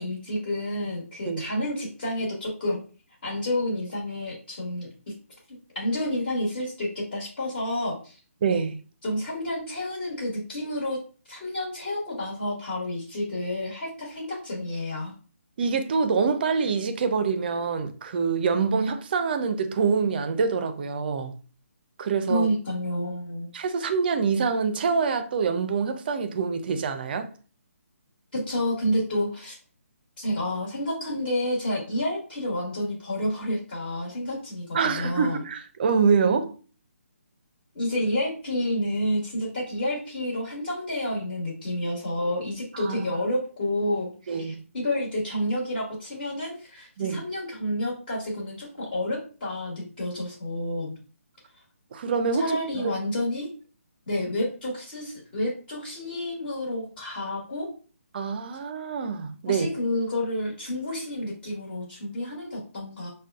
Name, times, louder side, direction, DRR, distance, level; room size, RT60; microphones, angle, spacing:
voice 1, 0.0-2.8 3.2-4.9 5.5-8.2 9.0-11.0 11.3-15.1 22.3-23.5 28.3-29.6 30.2-35.4 37.7-51.0 52.3-53.5 54.1-57.7 59.5-63.1, left 1 dB, 40° left, 1.3 m, -29 dB
voice 2, 8.4-8.8 15.6-21.3 22.0-22.5 23.5-27.3 34.7-36.5 42.7-43.0 44.3-44.6 47.0-47.2 51.9-52.9 58.1-59.7, right 5 dB, 40° right, 0.4 m, -25 dB
5.0 x 2.2 x 2.3 m
hypercardioid pair, 155°, 8 cm